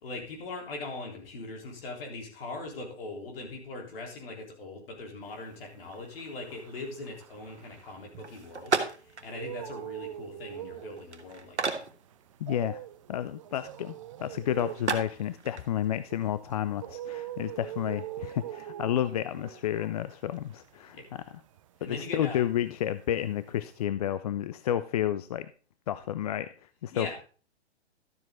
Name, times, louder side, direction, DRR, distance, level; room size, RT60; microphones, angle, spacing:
voice 1, 0.0-8.8 9.0-11.9 20.9-21.0 21.8-22.4 26.9-27.1, left 2 dB, 55° left, 1 dB, 3.7 m, -40 dB
sound 1, 5.5-8.7 9.1-22.5 22.8-23.8, right 12 dB, 30° right, 0.4 m, -43 dB
sound 2, 8.2-18.6, right 4 dB, 85° right, 1.3 m, -38 dB
voice 2, 12.4-12.8 13.1-21.2 21.8-25.5 25.9-26.5 26.8-27.1, left 11 dB, 35° left, 14 dB, 0.4 m, -31 dB
12.0 x 7.5 x 3.8 m, 0.37 s
figure-of-eight pair, 120°, 34 cm